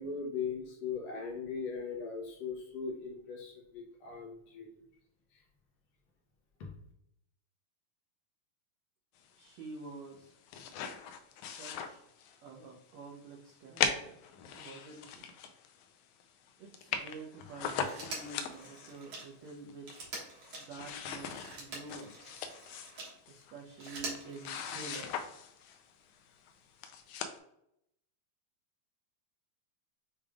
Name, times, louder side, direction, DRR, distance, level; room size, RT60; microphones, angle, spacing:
voice 1, 0.0-4.8 6.6-6.7, left 5 dB, 65° left, -1 dB, 1.8 m, -39 dB
voice 2, 9.4-10.3 11.4-12.0 12.4-14.3 14.5-15.3 16.6-19.9 20.6-22.4 23.3-25.3, right 3 dB, 85° right, -1 dB, 1.5 m, -48 dB
sound 1, 10.2-12.5 12.9-13.0 13.8-15.8 16.2-16.3 16.5-16.6 16.7-19.0 19.5-20.2 20.4-25.8 26.5-26.6 26.8-27.4, left 7 dB, 85° left, 1.7 m, -39 dB
Telephone, 17.7-23.2 23.6-25.3 26.6-26.7, right 2 dB, 55° right, 2.0 m, -46 dB
6.9 x 3.3 x 2.3 m, 0.76 s
omnidirectional pair, 4.0 m